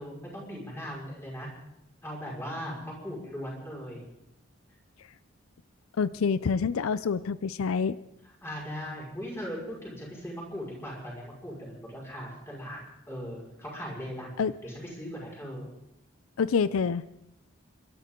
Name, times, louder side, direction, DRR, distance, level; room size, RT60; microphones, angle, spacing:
voice 1, 0.0-1.5 2.0-4.1 8.4-12.8 13.1-15.7, equal, 10° left, -3 dB, 5.3 m, -39 dB
voice 2, 6.0-8.0 14.4-14.5 16.4-17.0, left 5 dB, 85° left, 16 dB, 0.5 m, -27 dB
29.0 x 13.0 x 3.8 m, 0.85 s
head